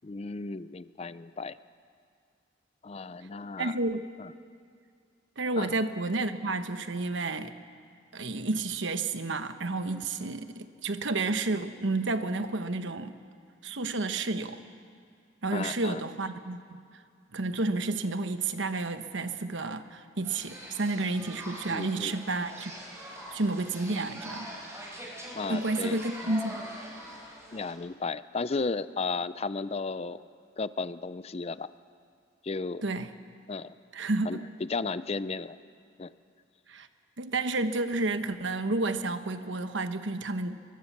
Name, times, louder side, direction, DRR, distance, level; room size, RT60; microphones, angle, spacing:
voice 1, 0.0-1.6 2.8-3.8 4.2-4.3 5.6-5.7 15.5-16.0 21.7-22.2 25.3-26.3 27.5-30.3 30.6-31.7 32.4-32.8 33.5-33.7 34.3-35.6 36.0-36.1, left 4 dB, 30° left, 15 dB, 0.5 m, -34 dB
voice 2, 3.6-4.1 5.4-7.5 8.1-13.2 13.6-14.6 15.4-16.6 17.3-22.7 23.3-24.5 25.5-26.7 32.8-33.1 33.9-34.4 36.7-36.9 37.2-40.6, right 2 dB, 70° right, 9 dB, 1.1 m, -31 dB
sound 1, 20.2-27.7, equal, 15° right, 4.6 m, -43 dB
24.0 x 21.0 x 7.3 m, 2.3 s
head